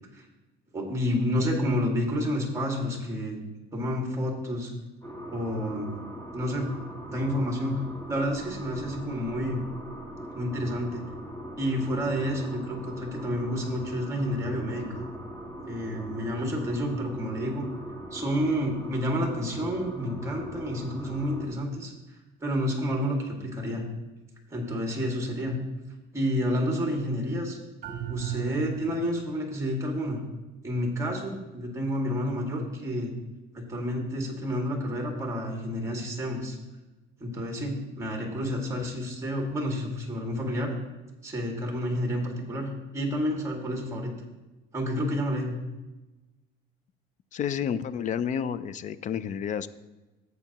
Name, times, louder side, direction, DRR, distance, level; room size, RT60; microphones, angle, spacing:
voice 1, 0.7-3.4 3.7-4.7 5.3-5.9 6.3-6.7 7.1-7.8 8.1-9.6 10.3-11.0 11.6-15.0 15.7-17.7 18.1-21.9 22.4-23.8 24.5-25.6 26.1-27.6 28.1-30.2 30.6-33.1 33.5-36.6 37.2-40.8 41.2-44.1 44.7-45.5, equal, 15° right, 0 dB, 2.0 m, -29 dB
sound 1, 5.0-21.5, equal, 10° left, 1.8 m, -41 dB
sound 2, 27.8-29.3, right 10 dB, 45° right, 1.3 m, -35 dB
voice 2, 47.3-49.7, left 8 dB, 40° left, 16 dB, 0.4 m, -30 dB
13.5 x 8.2 x 2.9 m, 1.1 s
cardioid pair, 145°, 20 cm